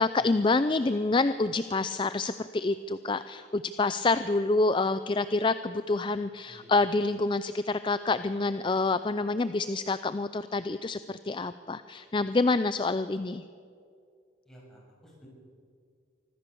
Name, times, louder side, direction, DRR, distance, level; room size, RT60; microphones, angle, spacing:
voice 1, 0.0-13.4, left 3 dB, 25° left, 13 dB, 0.4 m, -27 dB
voice 2, 14.5-15.3, equal, ahead, -5 dB, 7.3 m, -54 dB
24.5 x 15.5 x 7.0 m, 2.3 s
head